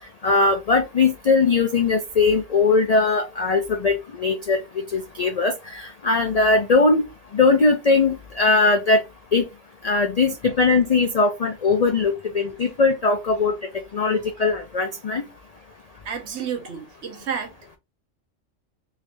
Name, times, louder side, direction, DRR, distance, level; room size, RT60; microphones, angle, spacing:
voice 1, 0.2-4.6 4.9-7.0 7.3-9.0 9.3-9.5 9.8-13.5 13.9-15.2, left 3 dB, 70° left, 0.3 m, -20 dB
voice 2, 16.0-17.5, right 7 dB, 60° right, 1.1 m, -30 dB
3.4 x 3.4 x 2.6 m
omnidirectional pair, 1.3 m